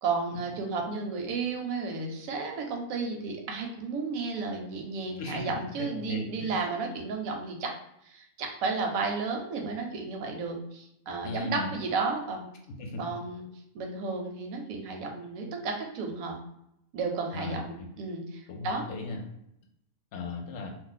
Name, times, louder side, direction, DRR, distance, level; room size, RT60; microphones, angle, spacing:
voice 1, 0.0-7.7 8.0-12.5 13.0-13.4 13.7-16.4 16.9-18.8, right 4 dB, 80° right, 2 dB, 1.1 m, -33 dB
voice 2, 5.2-6.7 11.2-11.8 12.8-13.0 17.3-17.6 18.5-19.2 20.1-20.7, left 2 dB, 65° left, 2 dB, 0.8 m, -37 dB
2.5 x 2.1 x 3.8 m, 0.79 s
omnidirectional pair, 1.4 m